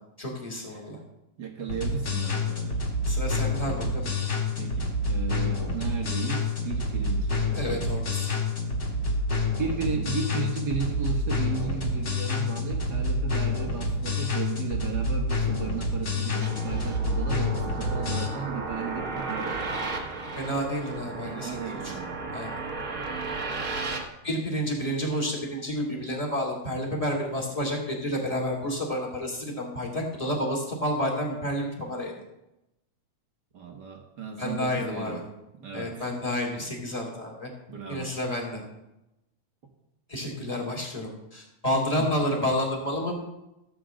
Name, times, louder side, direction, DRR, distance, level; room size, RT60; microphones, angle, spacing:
voice 1, 0.2-1.0 3.1-4.1 7.5-8.3 20.4-22.0 22.3-22.5 23.9-24.0 24.2-32.1 34.4-35.2 35.7-37.5 37.9-38.6 40.1-43.2, equal, 10° left, -1 dB, 2.1 m, -30 dB
voice 2, 1.4-2.8 4.6-7.9 9.6-19.8 21.2-22.1 33.5-35.2 35.6-36.1 37.7-38.1 42.0-42.1, right 6 dB, 65° right, 2 dB, 1.0 m, -35 dB
sound 1, 1.7-18.3, left 2 dB, 35° left, 1.3 m, -28 dB
sound 2, 16.4-24.0, right 3 dB, 80° right, 0.7 m, -34 dB
15.0 x 5.1 x 7.5 m, 0.91 s
omnidirectional pair, 3.7 m